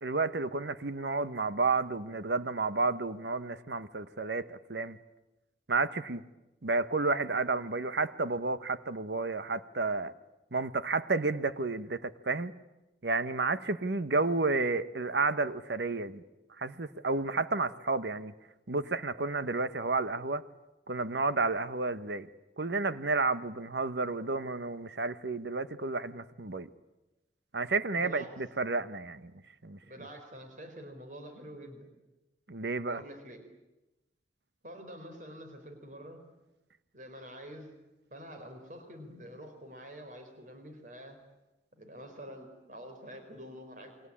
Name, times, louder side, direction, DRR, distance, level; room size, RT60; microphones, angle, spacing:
voice 1, 0.0-5.0 5.7-6.2 6.6-10.1 10.5-12.5 13.0-16.2 16.6-18.3 18.7-20.4 20.9-22.3 22.6-26.7 27.5-29.3 29.6-29.8 32.5-33.0, right 3 dB, 70° right, 13 dB, 1.1 m, -31 dB
voice 2, 28.0-28.3 29.8-31.9 32.9-33.4 34.6-36.2 36.9-37.8 38.1-41.2 41.7-44.1, equal, 45° right, 6 dB, 4.1 m, -47 dB
29.0 x 22.5 x 8.6 m, 1.0 s
head